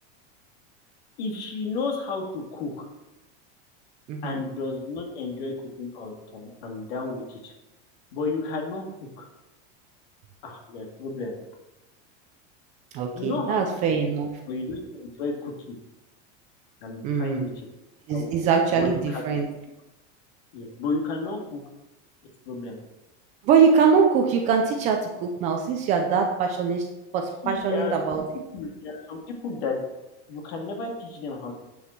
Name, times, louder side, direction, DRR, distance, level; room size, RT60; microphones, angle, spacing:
voice 1, 1.2-2.9 4.2-7.5 8.1-8.8 9.2-9.3 10.4-11.4 13.1-13.6 14.5-15.8 16.8-17.7 18.1-18.3 18.7-19.4 20.5-21.6 22.5-22.8 27.4-28.2 28.5-29.8 30.3-31.5, left 3 dB, 60° left, 1 dB, 2.1 m, -32 dB
voice 2, 4.1-4.4 12.9-14.3 17.0-17.5 18.1-19.5 23.5-26.8 27.1-28.2, right 6 dB, 20° right, 3 dB, 0.4 m, -22 dB
7.9 x 7.0 x 4.5 m, 0.98 s
supercardioid pair, 180°, 34 cm